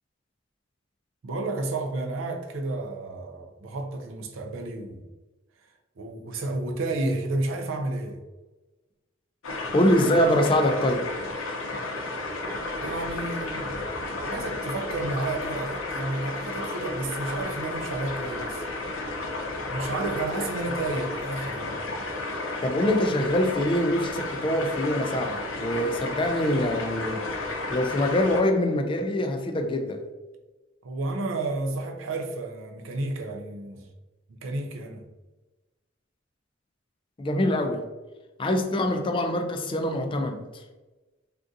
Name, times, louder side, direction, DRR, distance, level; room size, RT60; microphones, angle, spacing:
voice 1, 1.2-5.1 6.0-8.2 12.8-13.9 14.3-18.6 19.6-21.8 30.8-33.9 34.3-35.1, right 2 dB, 75° right, 0.4 m, -31 dB
sound 1, 9.4-28.4, left 2 dB, 85° left, 0.6 m, -32 dB
voice 2, 9.7-11.1 22.6-27.3 27.7-30.0 37.2-37.8 38.4-40.6, left 1 dB, 25° left, 0.3 m, -24 dB
3.6 x 2.4 x 2.6 m
head